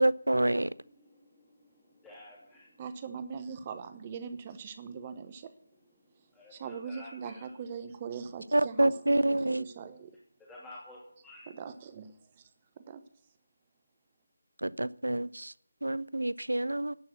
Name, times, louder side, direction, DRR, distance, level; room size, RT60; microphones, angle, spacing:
voice 1, 0.0-0.7 8.5-9.6 14.6-15.5 15.8-17.0, right 1 dB, 80° right, 0.4 m, -27 dB
voice 2, 0.6-2.8 6.3-7.5 10.4-11.5, left 1 dB, 5° left, 2.8 m, -52 dB
voice 3, 2.8-5.5 6.5-10.2 11.5-12.4 12.8-13.0, right 6 dB, 25° right, 0.8 m, -41 dB
11.0 x 6.0 x 8.3 m
figure-of-eight pair, 160°, 0 cm